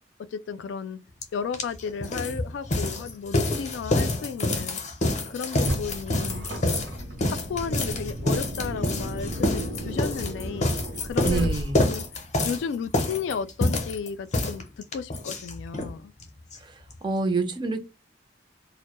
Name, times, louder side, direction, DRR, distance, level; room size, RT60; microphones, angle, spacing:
voice 1, 0.3-1.0 1.3-4.8 5.3-6.5 7.2-10.7 11.0-11.5 11.8-12.1 12.4-14.6 14.9-16.1, left 6 dB, 90° left, 0.3 m, -33 dB
sound 1, 1.2-1.3 1.5-15.9 16.2-16.3 16.5-16.6 16.9-17.0, left 2 dB, 40° left, 0.6 m, -27 dB
Car, 5.5-12.0, equal, 70° right, 0.7 m, -34 dB
voice 2, 11.2-11.8 16.6-16.7 17.0-17.9, right 3 dB, 25° right, 0.4 m, -26 dB
2.2 x 2.0 x 2.8 m
head